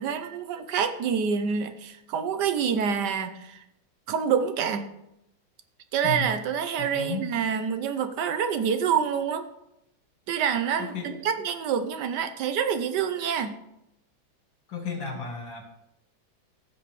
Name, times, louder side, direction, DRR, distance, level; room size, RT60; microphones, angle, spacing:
voice 1, 0.0-3.6 4.1-4.9 5.9-9.4 10.3-13.5, right 7 dB, 70° right, 9 dB, 1.2 m, -27 dB
voice 2, 6.8-7.3 10.8-11.1 14.7-15.6, left 4 dB, 85° left, 2 dB, 2.5 m, -33 dB
15.0 x 6.0 x 3.1 m, 0.84 s
omnidirectional pair, 2.1 m